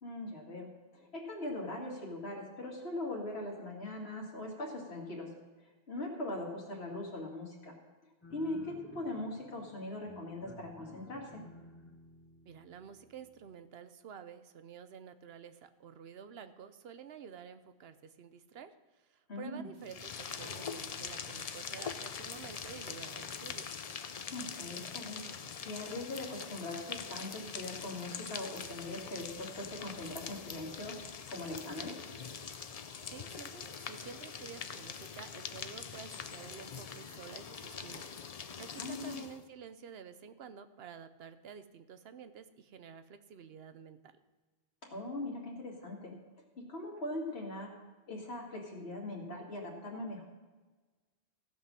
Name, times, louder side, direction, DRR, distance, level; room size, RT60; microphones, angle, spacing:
voice 1, 0.0-5.3 5.9-7.8 8.3-11.4 19.3-19.7 24.3-31.0 31.3-32.0 38.8-39.2 44.8-46.2 46.6-47.7 48.1-50.3, left 2 dB, 75° left, -2 dB, 2.2 m, -41 dB
sound 1, 8.2-13.5, left 2 dB, 15° left, 0.8 m, -55 dB
voice 2, 12.5-23.7 33.1-38.2 38.6-44.2, right 7 dB, 70° right, 11 dB, 0.9 m, -50 dB
sound 2, 19.8-39.4, left 6 dB, 45° left, 0.5 m, -43 dB
15.5 x 5.6 x 6.2 m, 1.3 s
omnidirectional pair, 1.1 m